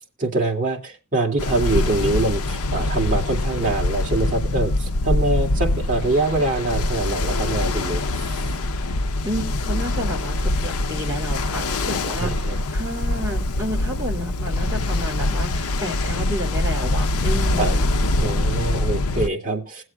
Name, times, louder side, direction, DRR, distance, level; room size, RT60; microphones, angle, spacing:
voice 1, 0.2-8.0 12.2-12.6 17.6-17.8 18.2-19.8, right 2 dB, 35° right, 0 dB, 2.2 m, -24 dB
Ocean, 1.4-19.3, left 2 dB, 85° left, 0.6 m, -24 dB
voice 2, 9.2-17.9, equal, 15° right, -1 dB, 2.4 m, -31 dB
21.5 x 7.8 x 2.2 m, 0.25 s
head